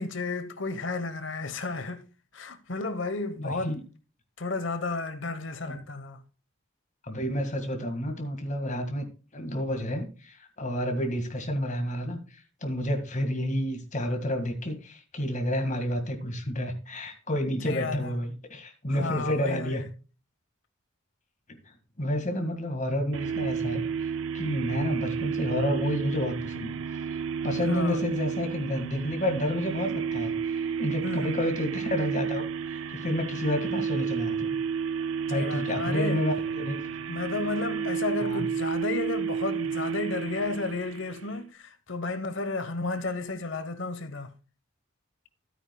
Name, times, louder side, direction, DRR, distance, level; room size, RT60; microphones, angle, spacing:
voice 1, 0.0-2.0 2.3-3.8 4.4-6.2 17.6-18.1 18.9-19.8 27.7-28.0 31.0-31.4 35.3-36.2 37.1-44.3, left 3 dB, 65° left, 1.1 m, -32 dB
voice 2, 3.4-3.8 5.6-5.8 7.0-9.1 9.3-19.9 22.0-23.8 24.3-26.8 27.1-32.5 32.7-34.6 35.3-36.8 38.2-38.4, left 1 dB, 35° left, 1.9 m, -30 dB
sound 1, 23.1-41.4, right 6 dB, 80° right, 0.5 m, -31 dB
13.0 x 9.0 x 2.3 m
head